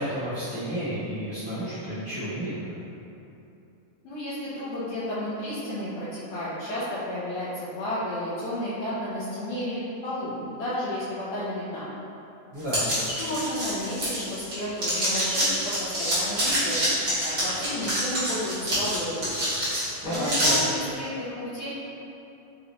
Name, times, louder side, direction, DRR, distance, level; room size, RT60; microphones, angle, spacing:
voice 1, 0.0-2.7 12.5-12.9 20.0-20.8, equal, 85° right, -15 dB, 1.0 m, -31 dB
voice 2, 4.0-11.9 12.9-16.9 17.2-19.2 20.0-21.7, left 1 dB, 75° left, -12 dB, 2.0 m, -32 dB
sound 1, 12.7-14.5 14.8-20.6, equal, 40° right, 1.3 m, -26 dB
5.6 x 3.0 x 2.6 m, 2.9 s
omnidirectional pair, 3.8 m